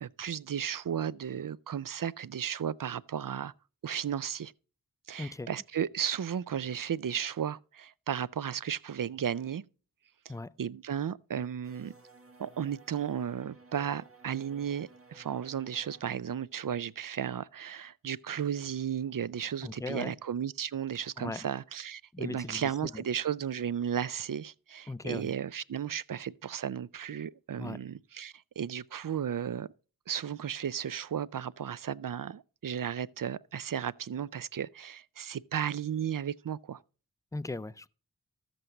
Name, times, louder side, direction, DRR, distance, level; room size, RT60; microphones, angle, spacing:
voice 1, 0.0-3.5 3.8-4.5 5.1-9.6 10.6-11.9 12.4-29.7 30.1-36.8, right 8 dB, 60° right, 0.5 m, -34 dB
voice 2, 5.2-5.5 10.3-10.5 19.6-20.1 21.2-21.5 22.1-23.0 24.9-25.3 27.6-27.8 37.3-37.9, left 2 dB, 10° left, 0.4 m, -38 dB
sound 1, 11.6-16.2, right 3 dB, 35° right, 1.7 m, -56 dB
13.5 x 7.8 x 3.9 m
wide cardioid pair, 60°, 37 cm